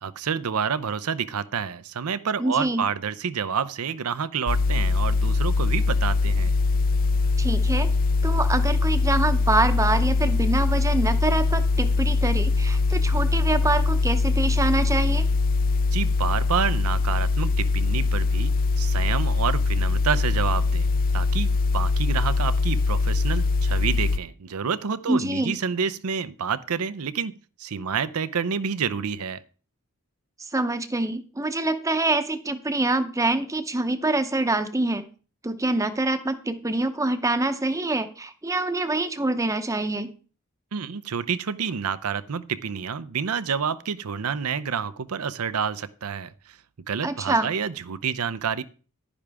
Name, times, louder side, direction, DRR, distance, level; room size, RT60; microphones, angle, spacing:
voice 1, 0.0-6.5 15.9-27.3 27.6-29.4 40.7-46.3 46.9-48.6, right 6 dB, 85° right, 17 dB, 0.6 m, -28 dB
voice 2, 2.4-2.9 7.4-7.9 8.2-15.3 25.1-25.6 30.5-35.0 35.4-40.1 47.0-47.5, right 2 dB, 15° right, 10 dB, 0.7 m, -25 dB
sound 1, 4.5-24.2, left 3 dB, 40° left, 0.5 m, -22 dB
11.0 x 10.0 x 3.5 m, 0.37 s
head